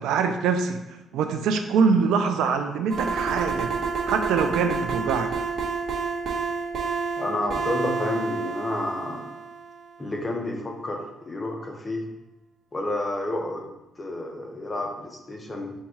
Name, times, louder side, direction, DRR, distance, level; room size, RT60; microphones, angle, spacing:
voice 1, 0.0-3.7 4.1-5.3, right 5 dB, 90° right, 7 dB, 0.3 m, -24 dB
sound 1, 2.9-9.8, right 5 dB, 60° right, 0.9 m, -29 dB
voice 2, 7.2-9.3 10.0-12.1 12.7-13.7 14.0-15.7, left 1 dB, 25° left, 1 dB, 0.7 m, -30 dB
4.0 x 2.3 x 4.5 m, 0.97 s
cardioid pair, 90°, 0 cm